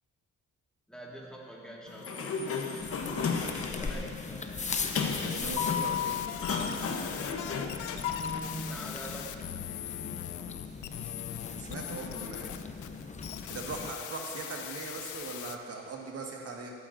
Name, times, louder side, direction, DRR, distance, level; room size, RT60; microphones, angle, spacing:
voice 1, 0.9-2.4 3.7-4.7 8.1-9.6, right 1 dB, ahead, -4 dB, 1.9 m, -44 dB
Sliding door, 1.9-8.4, left 6 dB, 50° left, 1.0 m, -33 dB
sound 1, 2.8-13.9, left 4 dB, 25° left, 0.6 m, -40 dB
sound 2, 4.7-15.6, left 12 dB, 80° left, 0.5 m, -41 dB
voice 2, 5.2-6.2 11.5-13.0 13.5-16.7, right 3 dB, 50° right, 0 dB, 1.7 m, -40 dB
15.5 x 9.0 x 2.6 m, 2.2 s
cardioid pair, 90°, 30 cm